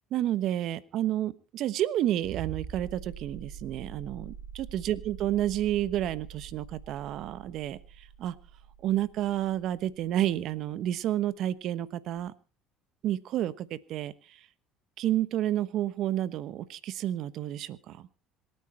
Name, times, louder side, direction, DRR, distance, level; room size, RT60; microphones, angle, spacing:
voice 1, 0.1-8.3 8.8-12.3 13.0-14.1 15.0-18.1, right 12 dB, 60° right, 16 dB, 1.1 m, -30 dB
sound 1, 2.2-10.7 12.2-12.3, right 7 dB, 85° right, 3.8 m, -44 dB
26.5 x 9.3 x 4.4 m, 0.36 s
supercardioid pair, 95°, 0 cm